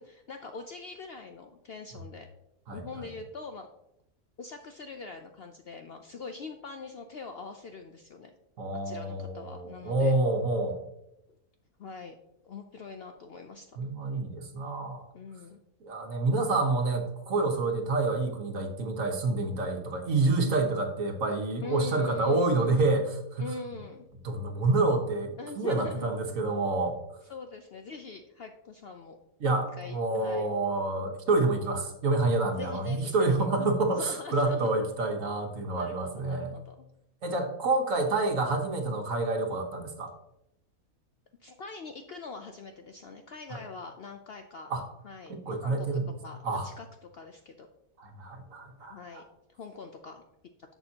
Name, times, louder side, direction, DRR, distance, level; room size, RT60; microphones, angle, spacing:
voice 1, 0.0-2.3 2.7-3.7 4.4-8.3 8.8-10.2 11.8-12.2 12.4-13.8 15.1-15.6 21.6-22.8 23.4-24.1 25.4-26.1 27.3-29.2 29.8-30.6 32.5-34.7 35.7-36.7 41.4-44.7 45.0-45.9 46.2-46.9 47.1-47.7 48.8-49.2 49.5-50.2, left 4 dB, 60° left, 5 dB, 0.6 m, -43 dB
voice 2, 8.6-10.8 13.8-15.0 15.8-23.5 24.2-27.0 29.4-36.5 37.2-40.1 43.5-43.6 44.7-44.8 45.3-46.1 46.4-46.7 48.0-49.2, right 2 dB, 65° right, 4 dB, 1.5 m, -28 dB
10.5 x 7.0 x 2.9 m, 0.85 s
omnidirectional pair, 1.5 m